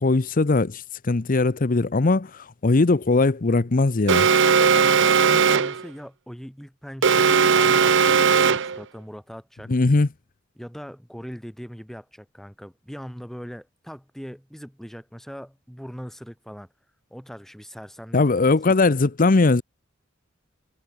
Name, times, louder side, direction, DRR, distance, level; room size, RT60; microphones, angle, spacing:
voice 1, 0.0-4.3 9.7-10.1 18.1-19.6, left 3 dB, 40° left, 0.7 m, -20 dB
Alarm, 4.1-5.8 7.0-8.8, right 6 dB, 60° right, 0.8 m, -18 dB
voice 2, 4.5-9.7 10.6-16.7 17.1-18.2 18.7-18.8, equal, ahead, 3.3 m, -40 dB
head